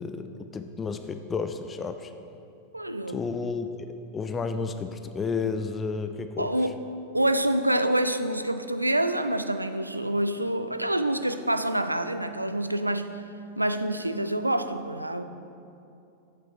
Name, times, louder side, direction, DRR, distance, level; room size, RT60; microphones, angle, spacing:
voice 1, 0.0-2.1 3.1-6.5, left 4 dB, 20° left, 8 dB, 0.4 m, -32 dB
voice 2, 2.7-3.2 6.4-6.7 7.1-13.1 13.6-15.2, right 1 dB, 85° right, 10 dB, 0.4 m, -26 dB
8.0 x 7.5 x 4.7 m, 2.7 s
figure-of-eight pair, 90°, 0 cm